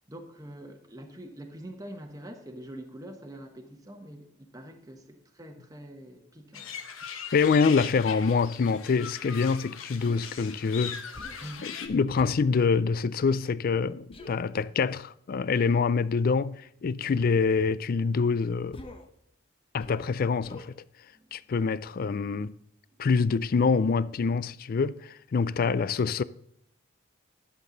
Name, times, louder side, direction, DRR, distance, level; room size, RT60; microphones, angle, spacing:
voice 1, 0.1-6.8 11.4-11.8 21.1-21.4, right 1 dB, 20° right, 1.0 m, -45 dB
sound 1, 6.5-11.9, left 7 dB, 90° left, 1.1 m, -40 dB
voice 2, 7.3-11.0 11.6-18.8 19.7-20.7 21.3-22.5 23.0-26.2, left 5 dB, 45° left, 0.4 m, -25 dB
Human voice, 10.0-10.3 11.1-11.5 12.1-12.4 14.1-14.3 15.5-15.8 17.0-17.3 18.7-19.1 19.8-20.1 20.4-20.7, left 1 dB, 30° left, 0.9 m, -45 dB
11.5 x 7.3 x 3.9 m
head